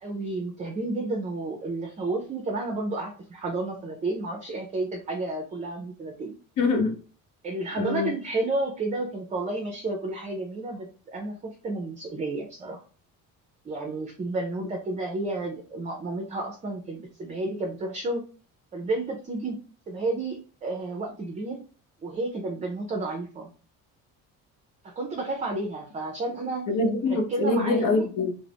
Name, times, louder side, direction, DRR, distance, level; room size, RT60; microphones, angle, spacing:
voice 1, 0.0-6.3 7.4-12.8 13.6-18.2 18.7-19.6 19.9-21.6 22.0-23.5 24.8-26.7 27.0-28.1, right 2 dB, 20° right, 2 dB, 0.4 m, -31 dB
voice 2, 6.6-7.0 7.8-8.1 26.7-28.3, left 3 dB, 70° left, 5 dB, 0.8 m, -24 dB
2.4 x 2.0 x 3.4 m, 0.38 s
cardioid pair, 110°, 34 cm